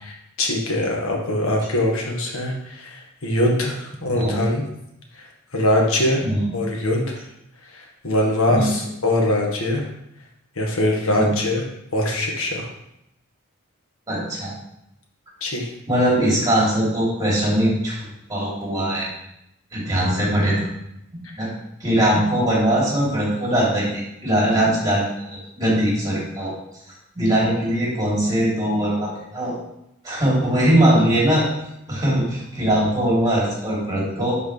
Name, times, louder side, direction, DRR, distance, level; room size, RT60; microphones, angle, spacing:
voice 1, 0.4-4.6 5.2-5.3 5.5-6.2 6.5-7.2 7.7-9.9 10.6-11.6 11.9-12.7 15.4-15.7, left 1 dB, 70° left, 0 dB, 1.7 m, -22 dB
voice 2, 14.1-14.5 15.9-18.0 18.3-19.1 19.7-20.7 21.4-21.5 21.8-26.5 27.1-29.5 30.0-31.5 31.9-34.4, right 1 dB, 15° right, -6 dB, 3.2 m, -21 dB
10.0 x 4.9 x 3.4 m, 0.80 s
head